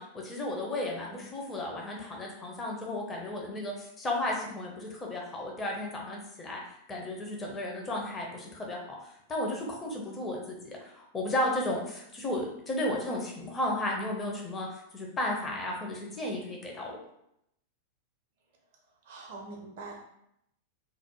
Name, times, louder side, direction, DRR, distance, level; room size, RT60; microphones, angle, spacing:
voice 1, 0.0-6.6 6.9-14.7 14.9-16.9, left 1 dB, 20° left, -1 dB, 0.6 m, -34 dB
voice 2, 19.0-20.0, right 3 dB, 50° right, 0 dB, 0.4 m, -44 dB
2.5 x 2.0 x 2.9 m, 0.77 s
figure-of-eight pair, 90°, 0 cm